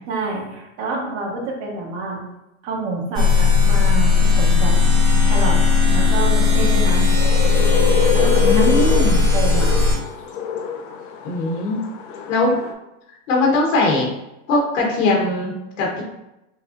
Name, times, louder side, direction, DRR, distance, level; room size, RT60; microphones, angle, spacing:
voice 1, 0.1-2.2 2.6-4.7 5.2-5.6 5.9-7.1 8.1-9.7, right 3 dB, 40° right, -1 dB, 1.0 m, -27 dB
sound 1, 3.1-9.9, left 4 dB, 10° right, 1.1 m, -16 dB
sound 2, 6.6-12.7, left 6 dB, 45° left, 0.4 m, -26 dB
voice 2, 8.4-9.2 11.2-11.8 12.3-12.6 13.3-14.1 14.5-16.0, left 2 dB, 80° left, -1 dB, 1.1 m, -20 dB
5.4 x 2.0 x 2.5 m, 0.91 s
supercardioid pair, 140°, 37 cm